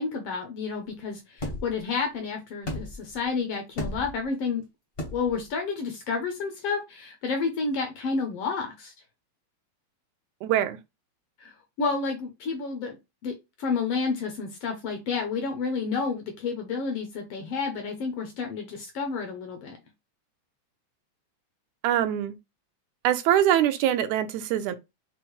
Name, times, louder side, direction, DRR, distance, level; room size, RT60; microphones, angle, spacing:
voice 1, 0.0-4.6 5.1-8.9 11.4-13.0 13.2-19.8, left 4 dB, 70° left, 1.5 m, -30 dB
sound 1, 1.4-1.8 2.6-3.2 3.8-4.2 5.0-5.4, left 1 dB, 50° left, 0.6 m, -34 dB
voice 2, 10.4-10.8 21.8-22.4 23.0-24.8, right 11 dB, 85° right, 1.9 m, -23 dB
6.2 x 2.1 x 3.0 m
omnidirectional pair, 3.3 m